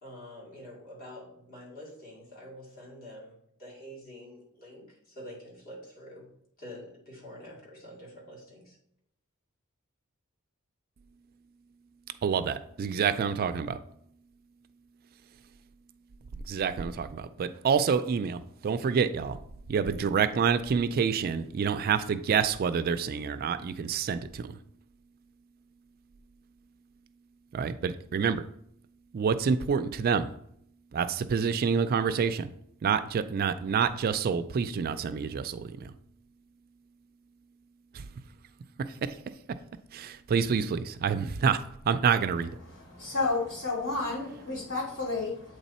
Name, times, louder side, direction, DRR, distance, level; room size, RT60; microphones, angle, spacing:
voice 1, 0.0-8.8, equal, 45° left, 2.4 m, -47 dB
voice 2, 12.2-13.8 16.5-19.4 19.7-24.6 27.5-28.4 29.1-30.3 30.9-32.5 32.8-35.9 37.9-38.1 38.8-39.1 39.9-42.5, right 6 dB, 45° right, 0.3 m, -27 dB
voice 3, 42.6-45.6, left 3 dB, 60° left, 2.7 m, -31 dB
8.2 x 3.3 x 4.2 m
head